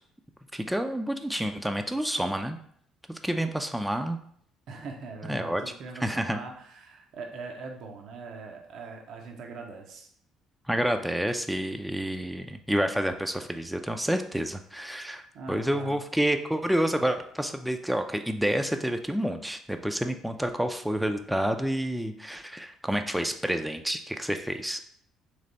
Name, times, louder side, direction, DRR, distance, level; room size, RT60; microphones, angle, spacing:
voice 1, 0.5-2.6 3.1-4.2 5.3-5.6 6.0-6.4 10.7-15.2 15.5-24.8, right 1 dB, 5° right, 6 dB, 0.4 m, -29 dB
voice 2, 4.7-10.1 15.3-16.0, right 4 dB, 65° right, 2 dB, 0.6 m, -41 dB
3.3 x 3.2 x 3.9 m, 0.64 s
hypercardioid pair, 60°, 0 cm